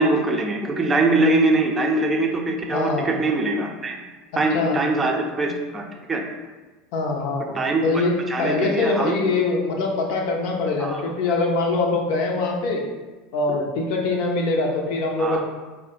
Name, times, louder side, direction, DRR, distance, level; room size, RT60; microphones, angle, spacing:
voice 1, 0.0-4.0 4.4-6.2 7.5-7.8 8.3-9.2 10.8-11.0 13.5-13.6 15.2-15.4, right 2 dB, 20° right, 1 dB, 0.6 m, -22 dB
voice 2, 2.7-3.1 4.5-4.8 6.9-7.5 7.8-12.8 13.3-15.4, left 3 dB, 55° left, 1 dB, 0.6 m, -23 dB
4.7 x 2.1 x 3.8 m, 1.2 s
figure-of-eight pair, 75°, 0 cm